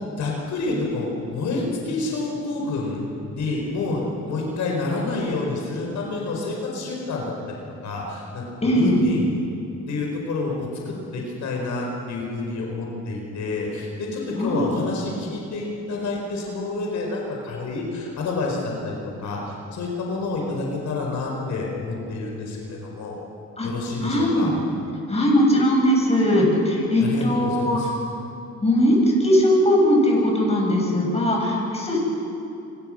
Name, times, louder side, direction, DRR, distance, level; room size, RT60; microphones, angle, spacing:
voice 1, 0.2-3.0 3.3-9.4 9.9-23.2 23.6-24.5 27.0-27.9, left 3 dB, 70° left, -1 dB, 4.7 m, -28 dB
voice 2, 8.6-9.0 14.4-14.7 23.6-23.7 24.0-24.5 25.1-27.8 28.6-32.0, equal, 20° left, -1 dB, 7.8 m, -19 dB
26.5 x 23.5 x 6.5 m, 2.8 s
cardioid pair, 90°, 30 cm